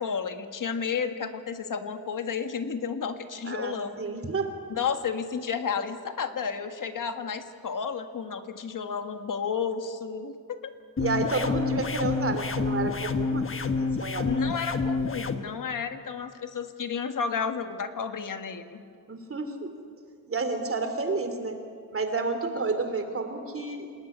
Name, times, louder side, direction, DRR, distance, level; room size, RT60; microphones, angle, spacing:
voice 1, 0.0-3.9 4.7-10.7 14.2-18.8, left 6 dB, 70° left, 7 dB, 1.7 m, -32 dB
voice 2, 3.4-4.5 11.0-14.6 19.1-19.7 20.3-21.6 21.9-23.9, right 3 dB, 40° right, 7 dB, 2.9 m, -30 dB
sound 1, 11.0-15.4, left 4 dB, 40° left, 1.2 m, -28 dB
28.0 x 20.0 x 9.8 m, 2.2 s
wide cardioid pair, 170°, 34 cm